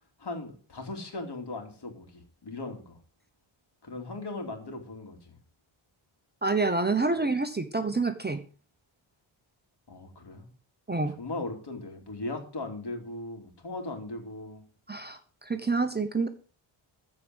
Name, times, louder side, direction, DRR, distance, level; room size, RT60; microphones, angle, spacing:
voice 1, 0.2-3.0 3.8-5.4 9.9-10.5 11.2-14.6, left 2 dB, 50° left, 4 dB, 3.2 m, -38 dB
voice 2, 6.4-8.4 10.9-11.1 14.9-16.3, right 3 dB, 20° right, 8 dB, 0.9 m, -27 dB
14.5 x 4.9 x 7.9 m, 0.40 s
wide cardioid pair, 135°, 49 cm